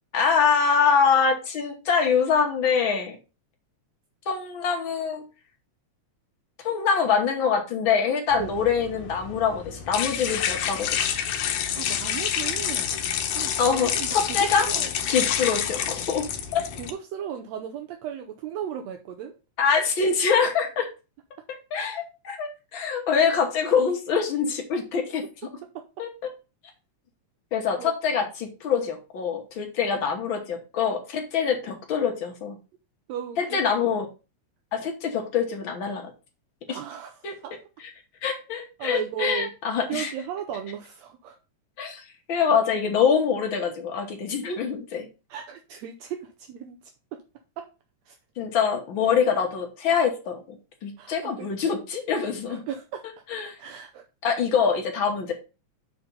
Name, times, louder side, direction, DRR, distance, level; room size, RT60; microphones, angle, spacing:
voice 1, 0.1-3.2 4.3-5.2 6.6-10.9 13.6-14.7 15.1-16.3 16.5-16.6 19.6-20.9 21.7-25.2 26.0-26.1 27.5-32.6 33.4-34.1 34.7-36.1 36.7-36.8 37.2-37.4 38.2-40.1 41.8-42.0 42.3-45.1 48.4-52.6 53.3-53.6 54.2-55.3, left 6 dB, 50° left, 3 dB, 1.7 m, -24 dB
sound 1, 8.3-16.9, left 9 dB, 80° left, 2.2 m, -28 dB
voice 2, 11.5-13.0 13.4-14.9 16.8-19.4 21.8-21.9 25.6-25.9 27.8-27.9 33.1-33.6 36.7-37.6 38.8-39.5 39.9-41.4 45.3-47.2 47.6-47.7 48.1-48.2 51.0-51.8 52.5-53.1 53.6-54.0, right 9 dB, 75° right, 5 dB, 1.7 m, -36 dB
7.0 x 3.7 x 5.3 m, 0.31 s
omnidirectional pair, 3.4 m